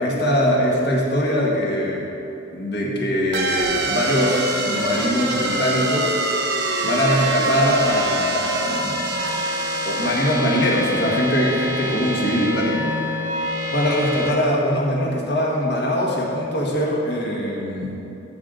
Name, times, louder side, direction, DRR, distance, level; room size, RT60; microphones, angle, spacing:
voice 1, 0.0-2.1 2.5-6.2 6.8-9.0 9.9-12.8 13.7-17.9, equal, 55° left, -3 dB, 1.7 m, -22 dB
sound 1, 3.3-14.3, right 1 dB, 55° right, 0.7 m, -25 dB
13.0 x 6.5 x 3.9 m, 2.9 s
head